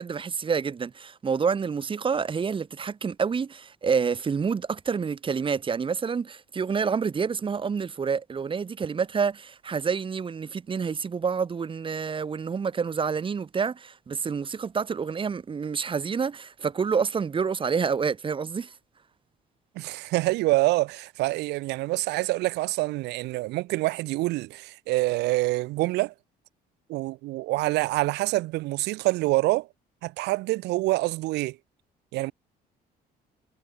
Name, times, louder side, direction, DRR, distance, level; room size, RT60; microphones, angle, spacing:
voice 1, 0.0-18.7, right 6 dB, 30° right, 1.6 m, -28 dB
voice 2, 19.8-26.1 26.9-29.7 30.0-31.6 32.1-32.3, right 20 dB, 90° right, 3.8 m, -26 dB
cardioid pair, 110°, 17 cm